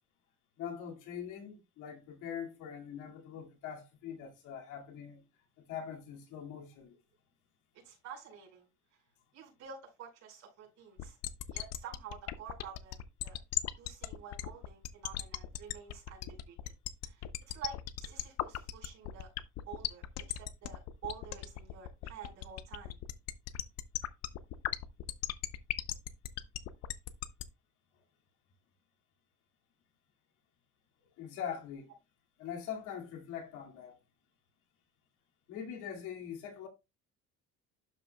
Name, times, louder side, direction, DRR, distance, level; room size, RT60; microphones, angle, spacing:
voice 1, 0.6-5.2 5.6-7.0 31.2-31.9 32.4-34.0 35.5-36.7, left 8 dB, 90° left, 2.2 m, -43 dB
voice 2, 7.8-9.0 9.3-11.2 11.5-13.4 13.6-16.7 17.0-19.3 19.7-23.0, right 7 dB, 60° right, 4.7 m, -49 dB
sound 1, 11.0-27.4, left 13 dB, 55° left, 0.6 m, -37 dB
12.0 x 5.1 x 2.2 m
cardioid pair, 165°, 30 cm